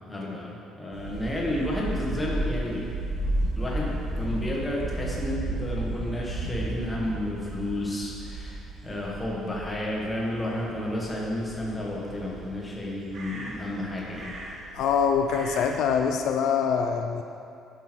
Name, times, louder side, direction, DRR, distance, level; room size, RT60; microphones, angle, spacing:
voice 1, 0.0-2.9 3.5-14.3, left 1 dB, 10° left, -4 dB, 1.5 m, -31 dB
sound 1, 0.9-16.1, right 1 dB, 40° right, 1.4 m, -34 dB
voice 2, 14.7-17.2, left 6 dB, 65° left, 5 dB, 0.4 m, -24 dB
10.5 x 6.1 x 4.5 m, 2.6 s
cardioid pair, 155°, 0 cm